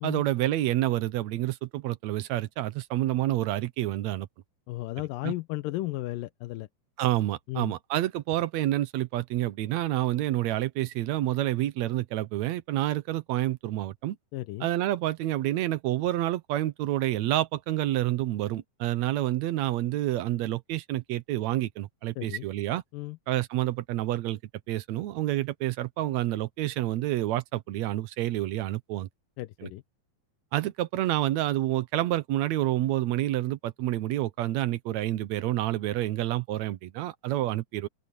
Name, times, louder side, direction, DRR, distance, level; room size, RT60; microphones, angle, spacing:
voice 1, 0.0-4.3 5.2-5.3 7.0-14.2 14.6-22.8 23.3-24.4 24.7-29.1 29.6-29.7 30.5-37.9, right 14 dB, 70° right, 1.8 m, -28 dB
voice 2, 4.7-6.7 7.5-7.7 14.3-14.7 22.2-22.5 22.9-23.2 29.4-29.8, left 18 dB, 85° left, 2.4 m, -34 dB
open air
omnidirectional pair, 4.0 m